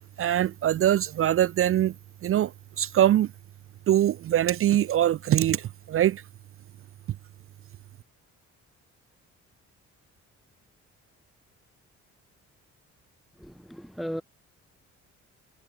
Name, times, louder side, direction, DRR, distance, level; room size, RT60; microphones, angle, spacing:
voice 1, 0.2-1.9 2.2-2.5 2.8-3.3 3.9-6.2, right 12 dB, 45° right, 0.4 m, -23 dB
voice 2, 13.4-14.2, equal, ahead, 1.2 m, -36 dB
cardioid pair, 90°, 30 cm